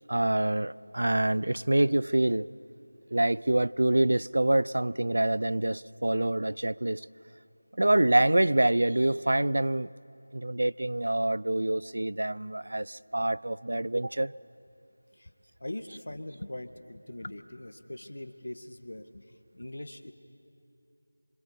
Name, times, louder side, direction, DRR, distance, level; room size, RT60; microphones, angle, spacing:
voice 1, 0.1-2.5 3.1-7.1 7.8-9.9 10.3-14.3, right 1 dB, 75° right, 20 dB, 0.6 m, -26 dB
voice 2, 15.6-20.1, left 1 dB, 75° left, 9 dB, 1.9 m, -41 dB
26.5 x 25.5 x 8.5 m, 2.7 s
figure-of-eight pair, 175°, 0 cm